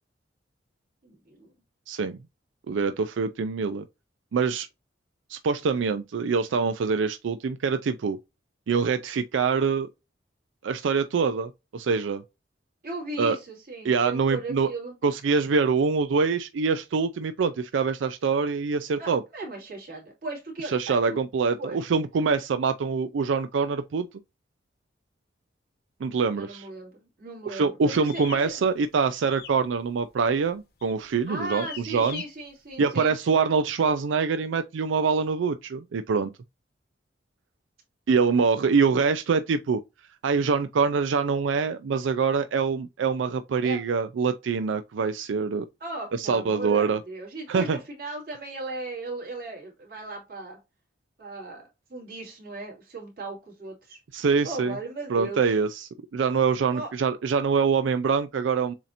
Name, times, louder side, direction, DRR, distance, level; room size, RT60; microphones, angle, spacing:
voice 1, 1.0-1.5 12.8-14.9 19.0-21.2 21.6-21.8 26.4-28.6 31.3-33.1 43.6-43.8 45.8-50.6 51.2-51.6 51.9-54.0 54.4-55.6 56.7-56.9, right 2 dB, 50° right, 2.7 m, -37 dB
voice 2, 1.9-2.2 2.7-3.9 4.3-4.7 5.3-8.2 8.7-9.9 10.6-12.2 13.2-13.4 13.8-14.7 15.0-19.2 20.6-24.1 26.0-26.7 27.5-32.2 32.8-36.3 38.1-39.8 40.2-45.7 46.1-47.0 47.5-47.8 54.1-54.8 55.1-58.7, right 5 dB, 90° right, 0.4 m, -25 dB
sound 1, 28.1-28.4 29.3-29.6 29.9-30.3 30.8-31.0 31.5-32.3, left 8 dB, 55° left, 0.9 m, -40 dB
7.3 x 2.8 x 2.5 m
head